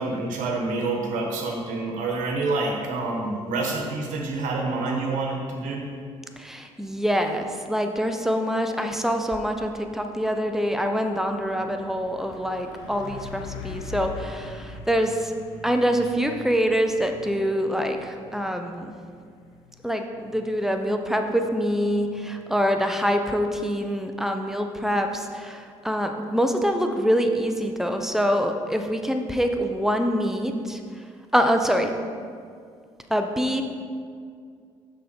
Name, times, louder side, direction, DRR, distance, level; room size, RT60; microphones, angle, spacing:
voice 1, 0.0-5.9, right 3 dB, 70° right, 1 dB, 1.2 m, -27 dB
voice 2, 6.4-15.3 15.6-19.0 19.8-31.0 31.3-31.9 33.1-33.6, equal, 5° right, 5 dB, 0.7 m, -25 dB
Truck, 9.2-23.4, left 4 dB, 80° left, 0.7 m, -44 dB
6.2 x 5.0 x 4.5 m, 2.2 s
hypercardioid pair, 60°, 13 cm